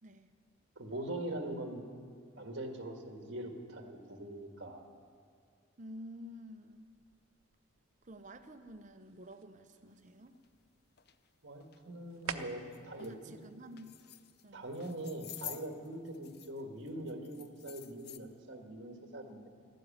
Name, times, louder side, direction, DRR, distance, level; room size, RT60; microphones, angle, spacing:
voice 1, 0.0-0.3 5.8-6.9 8.0-10.4 13.0-13.9 14.4-14.7, equal, 35° right, 8 dB, 0.8 m, -50 dB
voice 2, 0.7-1.8 2.4-4.8 11.4-13.1 14.5-19.5, right 1 dB, 55° right, 4 dB, 1.7 m, -42 dB
sound 1, 6.7-14.6, right 6 dB, 90° right, 0.8 m, -51 dB
sound 2, 10.4-10.5 11.0-11.1 11.6-11.8 12.3-12.4 12.7-13.2 13.7-14.4 14.7-16.6 16.9-18.2, left 11 dB, 50° left, 0.6 m, -49 dB
13.0 x 12.5 x 8.8 m, 2.2 s
head